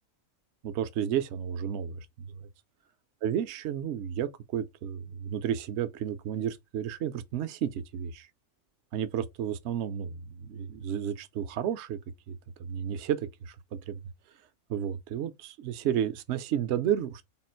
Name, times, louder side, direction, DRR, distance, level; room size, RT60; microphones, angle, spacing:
voice 1, 0.6-2.4 3.2-8.3 8.9-12.0 12.3-14.0 14.7-17.2, right 9 dB, 65° right, 0.7 m, -32 dB
3.6 x 2.5 x 4.2 m
omnidirectional pair, 1.5 m